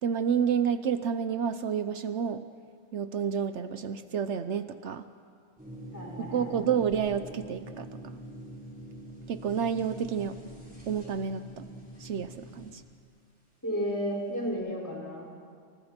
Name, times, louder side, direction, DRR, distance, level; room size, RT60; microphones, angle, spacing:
voice 1, 0.0-2.5 2.9-5.0 6.2-7.9 9.3-10.4 10.9-11.6 12.0-12.8, right 7 dB, 75° right, 11 dB, 1.1 m, -29 dB
sound 1, 5.6-12.7, right 1 dB, 5° right, 6.8 m, -44 dB
voice 2, 5.9-6.6 13.6-15.3, equal, 15° left, -3 dB, 5.4 m, -33 dB
29.5 x 29.0 x 4.4 m, 2.2 s
omnidirectional pair, 1.2 m